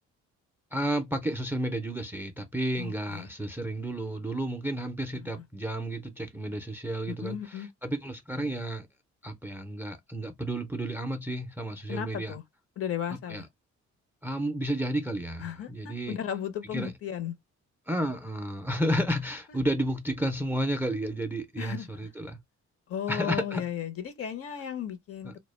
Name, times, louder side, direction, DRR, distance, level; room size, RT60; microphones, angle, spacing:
voice 1, 0.7-8.9 9.2-12.3 13.3-13.4 14.2-16.2 16.7-16.9 17.9-22.4 23.1-23.6 25.2-25.4, right 1 dB, 5° right, 0.4 m, -32 dB
voice 2, 2.8-3.3 5.1-5.3 7.1-7.7 11.9-12.4 12.8-13.5 15.4-17.3 19.5-19.6 21.6-22.2 22.9-25.4, left 9 dB, 50° left, 0.6 m, -35 dB
2.2 x 2.1 x 3.1 m
cardioid pair, 90°, 30 cm